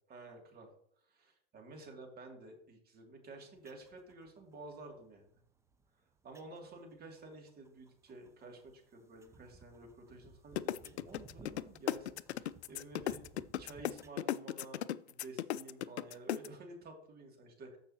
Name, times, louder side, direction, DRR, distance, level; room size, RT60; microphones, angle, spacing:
voice 1, 0.1-0.7 1.1-5.3 6.2-13.2 13.6-17.8, right 2 dB, 30° right, 2 dB, 2.6 m, -51 dB
sound 1, 3.6-14.1, right 3 dB, 10° right, 0.7 m, -61 dB
sound 2, 10.6-16.5, left 12 dB, 80° left, 0.5 m, -36 dB
14.5 x 5.6 x 2.9 m, 0.68 s
hypercardioid pair, 100°, 33 cm